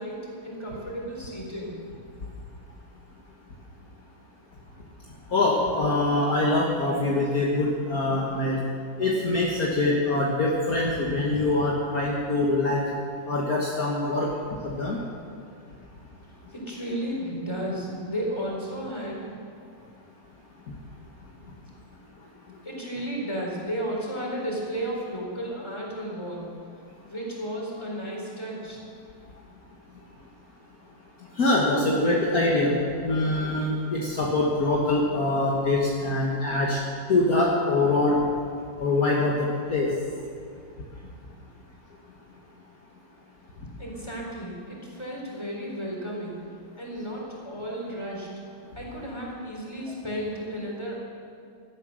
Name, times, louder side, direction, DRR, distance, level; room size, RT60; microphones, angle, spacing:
voice 1, 0.0-1.8 16.5-19.3 22.6-26.5 27.0-28.8 43.8-46.4 46.8-48.3 48.7-51.0, equal, 15° left, -2 dB, 3.9 m, -33 dB
voice 2, 5.3-8.6 9.0-12.8 13.3-14.3 14.6-15.0 31.4-32.7 33.0-36.8 37.1-38.2 38.8-39.9, left 2 dB, 50° left, -3 dB, 1.9 m, -24 dB
16.5 x 12.5 x 6.4 m, 2.4 s
omnidirectional pair, 2.0 m